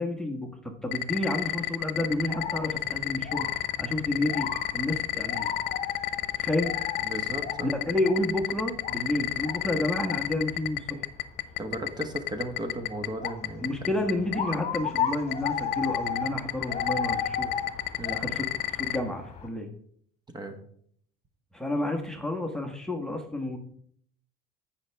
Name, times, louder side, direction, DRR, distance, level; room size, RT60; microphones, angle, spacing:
voice 1, 0.0-5.5 6.4-6.8 7.6-11.0 13.6-17.5 18.1-19.7 21.5-23.6, left 1 dB, 5° left, 3 dB, 1.3 m, -30 dB
sound 1, 0.9-19.0, left 15 dB, 65° left, 0.9 m, -29 dB
sound 2, 2.1-19.5, left 7 dB, 35° left, 1.9 m, -36 dB
voice 2, 7.0-7.8 11.6-13.9 18.0-18.2 20.3-20.6, right 1 dB, 25° right, 6 dB, 1.3 m, -35 dB
16.0 x 5.8 x 3.4 m, 0.62 s
cardioid pair, 110°, 18 cm